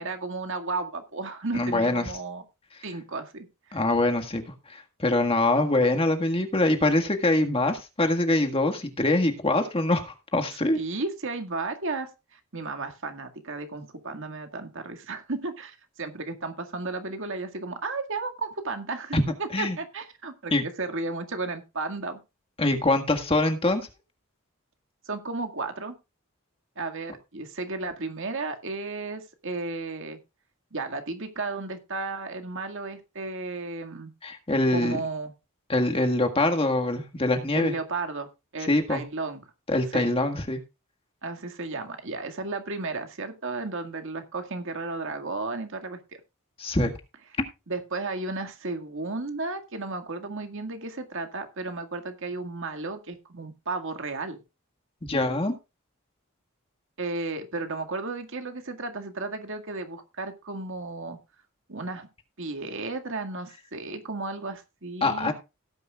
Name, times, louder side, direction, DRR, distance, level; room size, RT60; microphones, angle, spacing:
voice 1, 0.0-2.4 2.8-3.8 10.7-22.2 25.1-26.0 26.8-30.2 30.7-34.1 34.7-35.3 37.5-38.3 38.5-39.4 39.9-40.1 41.2-46.2 47.7-54.4 57.0-61.2 61.7-62.1 62.4-65.3, right 3 dB, 60° right, 6 dB, 1.9 m, -34 dB
voice 2, 1.5-2.0 3.7-4.4 4.7-10.8 19.1-19.2 19.5-19.8 20.5-20.6 22.6-23.8 34.2-35.0 35.7-37.7 38.6-39.0 39.7-40.6 46.6-46.9 47.4-47.5 55.0-55.5 65.0-65.3, left 2 dB, 25° left, 5 dB, 1.7 m, -24 dB
17.5 x 9.9 x 2.4 m, 0.27 s
head